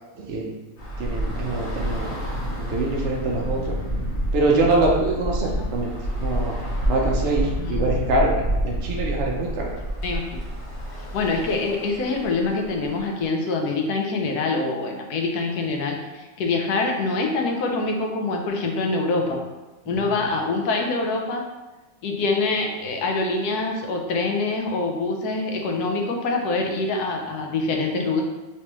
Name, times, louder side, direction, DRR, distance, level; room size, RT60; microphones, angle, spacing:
voice 1, 0.2-0.5 1.0-2.1 2.6-3.8 4.3-5.9 6.2-6.5 6.9-8.4 8.6-9.7 20.0-20.3, right 2 dB, 70° right, -1 dB, 0.6 m, -24 dB
Bus / Traffic noise roadway noise, 0.8-13.2, equal, 50° left, 1.1 m, -28 dB
voice 2, 11.1-19.4 19.9-21.4 22.0-28.2, left 3 dB, 85° left, 2 dB, 1.1 m, -25 dB
3.3 x 3.0 x 2.9 m, 1.1 s
omnidirectional pair, 1.6 m